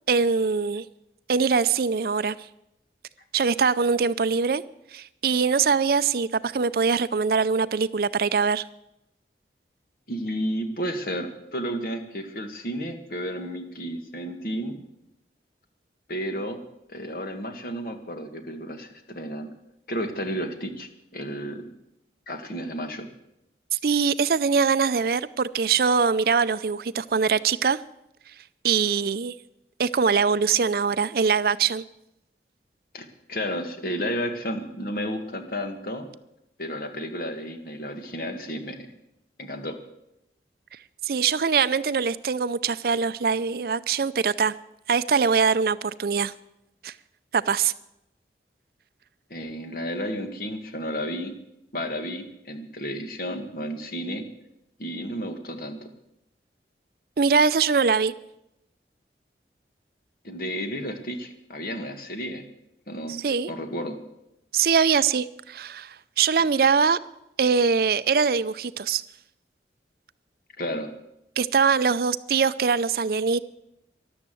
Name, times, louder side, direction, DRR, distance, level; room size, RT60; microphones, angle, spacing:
voice 1, 0.1-0.9 1.3-2.4 3.3-4.6 4.9-8.6 23.7-27.8 28.6-29.3 29.8-31.8 41.0-44.5 44.9-46.3 46.8-46.9 47.3-47.7 57.2-58.1 63.1-63.5 64.5-67.0 67.4-69.0 71.4-73.4, right 5 dB, 55° right, 0.5 m, -22 dB
voice 2, 10.1-14.8 16.1-16.6 16.9-19.5 19.9-21.6 22.3-23.1 32.9-36.1 36.6-38.9 39.4-39.8 49.3-51.3 51.7-54.2 54.8-55.8 60.2-62.4 62.9-63.9 70.6-70.9, equal, 55° left, 1.7 m, -32 dB
13.5 x 11.5 x 7.6 m
head